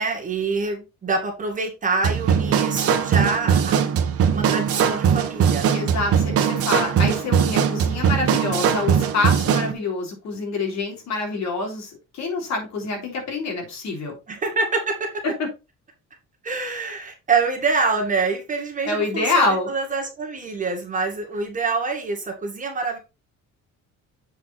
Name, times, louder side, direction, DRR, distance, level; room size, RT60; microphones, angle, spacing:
voice 1, 0.0-3.8 4.3-5.7 14.3-15.2 16.4-23.0, right 4 dB, 25° right, 2 dB, 2.1 m, -26 dB
sound 1, 2.0-9.7, right 7 dB, 50° right, 1.1 m, -20 dB
voice 2, 5.7-14.1 15.2-15.5 18.8-19.7, left 3 dB, 65° left, 2 dB, 3.4 m, -26 dB
7.7 x 4.7 x 4.1 m, 0.27 s
cardioid pair, 170°, 30 cm